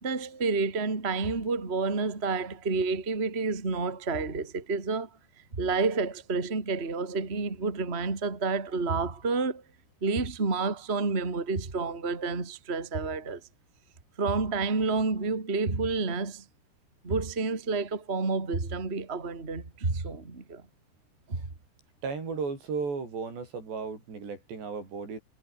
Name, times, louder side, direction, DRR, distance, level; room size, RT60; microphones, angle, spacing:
voice 1, 0.0-5.1 5.5-9.6 10.0-13.4 14.2-16.4 17.0-20.6 21.3-21.4, right 4 dB, 15° right, 2.5 m, -29 dB
voice 2, 22.0-25.2, right 5 dB, 70° right, 9.0 m, -34 dB
omnidirectional pair, 5.1 m